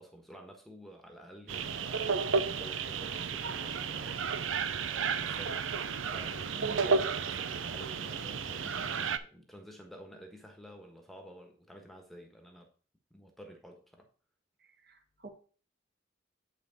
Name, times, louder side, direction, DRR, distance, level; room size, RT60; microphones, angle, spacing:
voice 1, 0.0-4.6 4.9-5.7 6.0-12.7 13.1-14.1, right 1 dB, ahead, 1.3 m, -51 dB
sound 1, 1.5-9.2, right 5 dB, 90° right, 0.6 m, -32 dB
voice 2, 14.9-15.3, right 3 dB, 55° right, 1.9 m, -47 dB
8.0 x 5.8 x 4.2 m
head